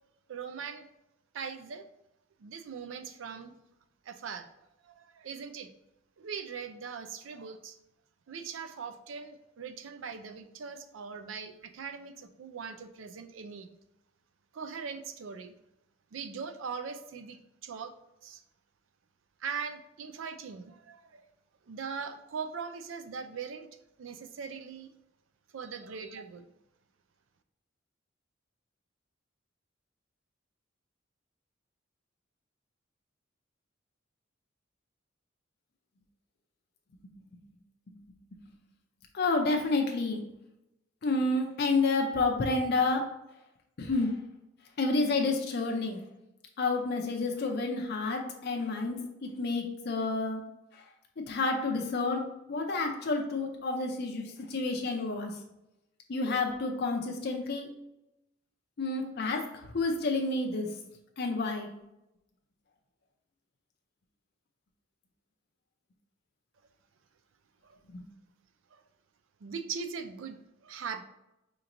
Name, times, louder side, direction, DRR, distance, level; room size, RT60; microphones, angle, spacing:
voice 1, 0.3-0.9 1.3-1.9 2.4-3.5 4.0-4.5 4.8-5.7 6.2-7.8 8.3-13.7 14.5-15.5 16.1-17.9 18.2-18.4 19.4-21.3 21.7-23.7 24.0-24.9 25.5-26.5 67.6-67.8 68.7-68.8 69.4-71.0, right 6 dB, 75° right, 8 dB, 0.4 m, -40 dB
voice 2, 37.0-37.4 37.9-38.0 38.3-38.4 39.1-40.3 41.0-43.2 43.8-44.3 44.8-46.0 46.6-50.5 50.7-50.8 51.3-55.4 56.1-57.7 58.8-60.8 61.2-61.7 67.9-68.0, left 3 dB, 55° left, 2 dB, 0.5 m, -30 dB
5.0 x 2.9 x 2.6 m, 0.89 s
head